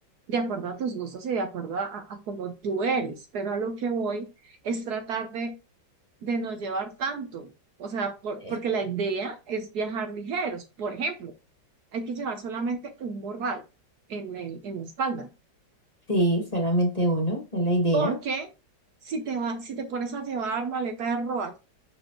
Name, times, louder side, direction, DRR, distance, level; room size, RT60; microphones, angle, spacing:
voice 1, 0.3-5.5 6.2-7.5 7.8-11.3 11.9-13.6 14.1-15.3 17.9-18.5 19.0-21.6, right 4 dB, 65° right, 6 dB, 1.3 m, -30 dB
voice 2, 16.1-18.2, right 1 dB, 20° left, 0 dB, 1.8 m, -24 dB
6.5 x 5.1 x 3.0 m, 0.28 s
omnidirectional pair, 2.0 m